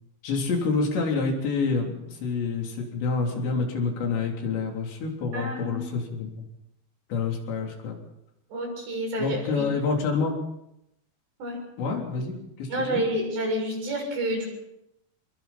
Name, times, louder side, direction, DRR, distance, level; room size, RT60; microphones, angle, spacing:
voice 1, 0.2-6.4 7.1-8.0 9.2-10.4 11.8-13.0, left 4 dB, 70° left, 1 dB, 5.7 m, -28 dB
voice 2, 5.3-5.8 8.5-9.7 11.4-11.6 12.7-14.5, right 1 dB, 70° right, 0 dB, 8.9 m, -29 dB
28.0 x 22.5 x 4.4 m, 0.81 s
omnidirectional pair, 5.2 m